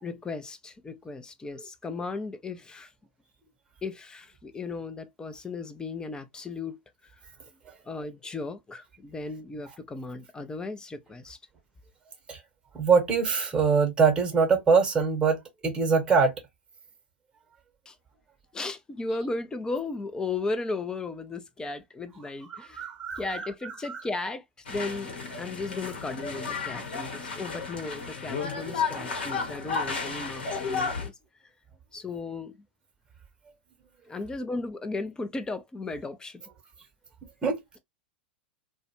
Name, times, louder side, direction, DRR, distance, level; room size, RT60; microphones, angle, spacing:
voice 1, 0.0-2.9 3.8-6.8 7.9-11.4 17.9-18.0 18.5-22.9 23.2-31.2 31.9-32.6 34.1-36.4, left 3 dB, 15° left, 0.5 m, -35 dB
voice 2, 12.7-16.3 22.5-23.5 23.9-24.0 37.4-37.8, right 5 dB, 15° right, 1.0 m, -23 dB
sound 1, 24.6-31.1, left 5 dB, 70° left, 1.0 m, -33 dB
2.4 x 2.2 x 2.9 m
hypercardioid pair, 95°, 6 cm